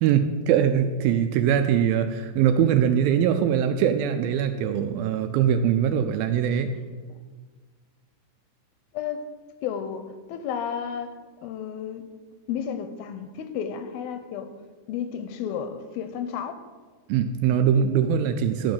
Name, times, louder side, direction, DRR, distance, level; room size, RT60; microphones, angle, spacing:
voice 1, 0.0-6.7 17.1-18.7, right 8 dB, 80° right, 8 dB, 2.2 m, -22 dB
voice 2, 8.9-9.3 9.6-12.0 12.5-14.5 14.9-16.6, left 8 dB, 80° left, 8 dB, 2.4 m, -32 dB
12.5 x 5.1 x 7.3 m, 1.4 s
omnidirectional pair, 4.5 m